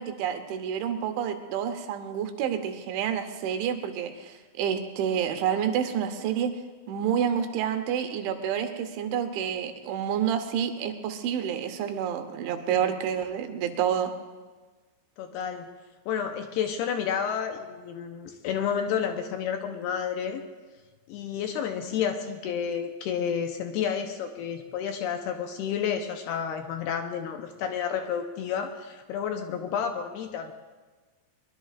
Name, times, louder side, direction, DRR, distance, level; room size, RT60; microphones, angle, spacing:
voice 1, 0.0-6.5 6.9-14.1, right 8 dB, 90° right, 7 dB, 3.5 m, -29 dB
voice 2, 15.2-15.7 16.1-20.4 21.1-30.5, left 7 dB, 80° left, 5 dB, 2.5 m, -30 dB
23.0 x 21.5 x 2.5 m, 1.3 s
omnidirectional pair, 5.2 m